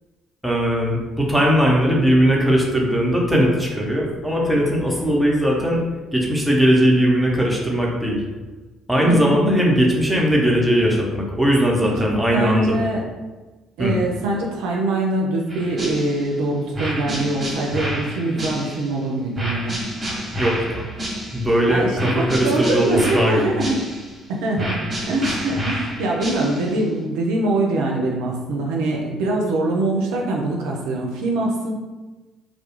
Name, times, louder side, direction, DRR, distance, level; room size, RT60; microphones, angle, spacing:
voice 1, 0.4-5.8 6.1-8.2 8.9-12.8 13.8-13.9 20.4-20.9 21.3-23.6, equal, 5° right, -3 dB, 0.7 m, -19 dB
voice 2, 9.0-9.4 11.8-11.9 12.3-13.0 13.8-19.7 21.7-23.7 24.3-24.8 25.1-31.7, right 2 dB, 75° right, -1 dB, 0.4 m, -23 dB
sound 1, 15.5-16.4 16.7-19.0 19.4-21.6 22.0-24.2 24.6-26.8, equal, 35° right, 0.9 m, -29 dB
2.2 x 2.1 x 2.9 m, 1.2 s
hypercardioid pair, 55°, 0 cm